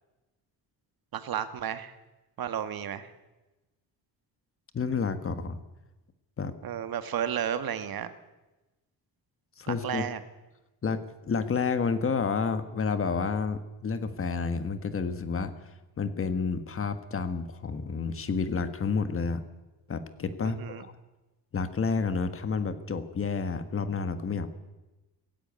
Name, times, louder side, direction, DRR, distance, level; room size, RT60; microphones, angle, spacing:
voice 1, 1.1-1.9 2.4-3.1 6.6-8.1 9.7-10.2 20.4-20.8, right 9 dB, 60° right, 11 dB, 1.6 m, -32 dB
voice 2, 4.7-5.6 6.4-6.5 9.6-10.0 10.8-15.5 16.0-19.4 19.9-20.9 21.5-24.5, left 5 dB, 30° left, 10 dB, 1.5 m, -30 dB
17.0 x 16.0 x 9.5 m, 1.1 s
cardioid pair, 155°, 40 cm